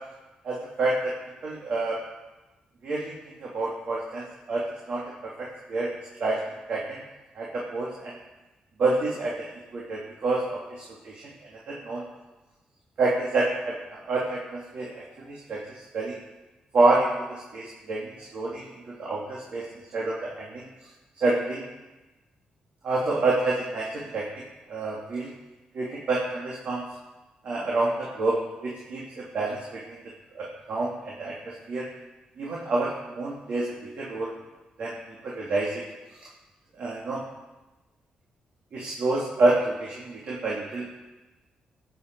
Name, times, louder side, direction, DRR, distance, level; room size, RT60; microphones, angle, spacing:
voice 1, 0.4-1.1 1.4-2.0 2.8-3.1 3.4-5.9 6.2-6.4 6.7-7.0 7.3-8.1 8.8-9.5 9.7-11.2 11.7-12.0 13.0-15.6 15.9-16.2 16.7-19.6 19.9-20.6 21.2-21.6 22.8-24.3 24.7-25.3 25.7-26.8 27.4-30.0 30.3-31.9 32.4-33.7 34.0-34.3 34.8-35.0 35.2-35.8 36.8-37.2 38.7-40.9, right 2 dB, 60° right, -4 dB, 2.5 m, -28 dB
15.5 x 9.3 x 4.7 m, 1.1 s
cardioid pair, 95°, 3 cm